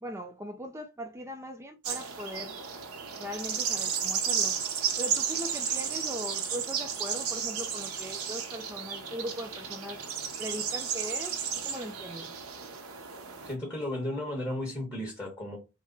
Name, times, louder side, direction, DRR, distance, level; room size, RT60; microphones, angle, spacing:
voice 1, 0.0-2.6 3.2-4.6 5.0-10.0 10.4-12.3, equal, 15° right, 0.4 m, -40 dB
sound 1, 1.8-13.5, right 7 dB, 90° right, 1.0 m, -33 dB
voice 2, 13.4-15.6, left 1 dB, 15° left, 1.2 m, -34 dB
6.3 x 2.1 x 3.9 m
head